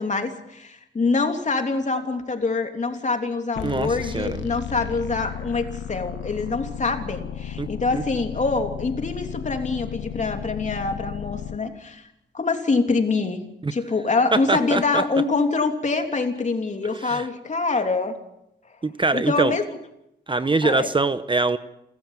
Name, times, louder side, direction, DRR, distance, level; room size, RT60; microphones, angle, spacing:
voice 1, 0.0-12.1 12.3-13.4 13.7-18.2 19.1-19.8 20.6-20.9, left 3 dB, 40° left, 5 dB, 3.1 m, -25 dB
sound 1, 3.5-11.6, left 9 dB, 70° left, 1.2 m, -34 dB
voice 2, 3.6-4.4 7.6-7.7 7.9-8.0 13.6-13.7 14.3-15.0 17.0-17.3 18.8-19.6 20.3-21.6, right 3 dB, 25° right, 12 dB, 1.0 m, -23 dB
29.0 x 13.5 x 7.5 m, 0.84 s
cardioid pair, 75°, 19 cm